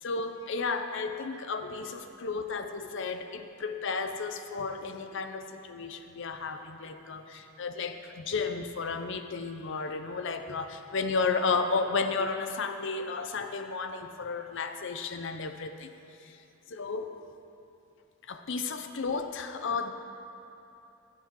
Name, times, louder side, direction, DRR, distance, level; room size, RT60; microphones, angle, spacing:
voice 1, 0.0-15.9 16.2-16.4 16.7-17.2 18.3-19.9, left 4 dB, 60° left, 7 dB, 0.7 m, -33 dB
18.5 x 7.4 x 3.8 m, 2.9 s
head